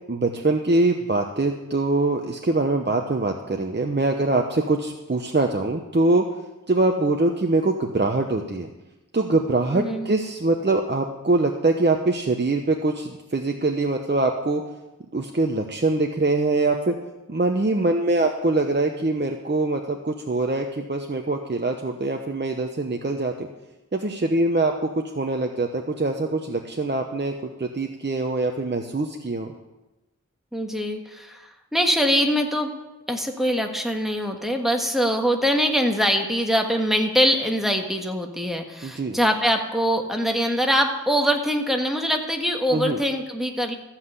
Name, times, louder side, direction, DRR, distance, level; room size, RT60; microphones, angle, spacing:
voice 1, 0.1-6.2 6.7-8.7 9.1-14.6 15.1-16.9 17.3-23.3 23.9-29.5 38.8-39.2 42.7-43.0, right 2 dB, 35° right, 2 dB, 0.9 m, -23 dB
voice 2, 9.7-10.1 30.5-32.7 33.1-43.8, equal, ahead, 3 dB, 1.6 m, -23 dB
14.5 x 5.8 x 8.1 m, 1.0 s
wide cardioid pair, 55°, 31 cm